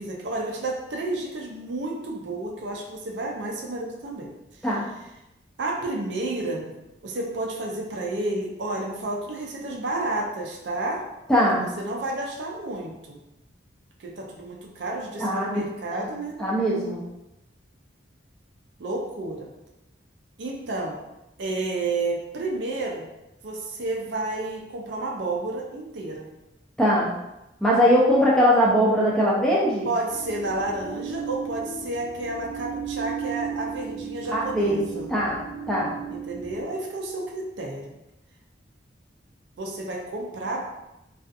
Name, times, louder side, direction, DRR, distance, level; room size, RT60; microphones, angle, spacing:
voice 1, 0.0-4.3 5.6-6.7 7.0-11.0 11.6-13.2 14.0-16.4 18.8-19.5 20.4-21.0 21.4-23.1 23.4-26.3 29.8-35.1 36.1-38.0 39.6-40.6, right 2 dB, 65° right, 0 dB, 0.4 m, -31 dB
voice 2, 11.3-11.6 15.2-15.6 15.9-16.1 16.4-17.0 26.8-27.1 27.6-29.9 34.3-35.4 35.7-35.9, equal, 5° left, -6 dB, 0.4 m, -21 dB
sound 1, 30.1-36.6, right 6 dB, 15° right, 1.0 m, -35 dB
2.5 x 2.4 x 2.4 m, 0.92 s
head